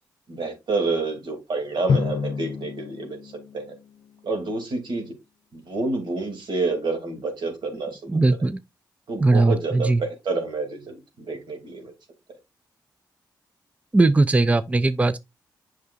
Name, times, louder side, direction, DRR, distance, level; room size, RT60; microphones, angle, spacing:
voice 1, 0.3-3.7 4.2-5.1 5.5-8.2 9.1-11.9, right 3 dB, 75° right, 2.6 m, -29 dB
Drum, 1.9-4.5, left 5 dB, 60° left, 0.7 m, -29 dB
voice 2, 8.1-8.6 9.2-10.0 13.9-15.2, right 2 dB, 15° right, 0.4 m, -19 dB
8.0 x 6.1 x 2.5 m
cardioid pair, 70°, 8 cm